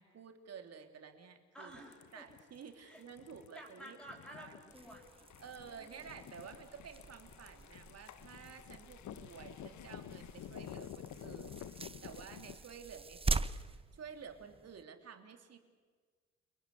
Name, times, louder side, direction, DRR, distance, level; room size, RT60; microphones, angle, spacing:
voice 1, 0.0-1.7 2.1-4.0 4.4-4.5 5.4-15.6, right 6 dB, 55° right, 6 dB, 3.3 m, -52 dB
voice 2, 1.5-2.2 2.8-3.0 3.5-5.3 5.5-6.3, right 1 dB, ahead, -2 dB, 6.5 m, -53 dB
sound 1, 1.7-12.5, left 11 dB, 70° left, 1.1 m, -51 dB
sound 2, 4.7-14.8, right 3 dB, 20° right, 0.9 m, -43 dB
29.0 x 21.5 x 8.4 m, 1.5 s
cardioid pair, 90°, 30 cm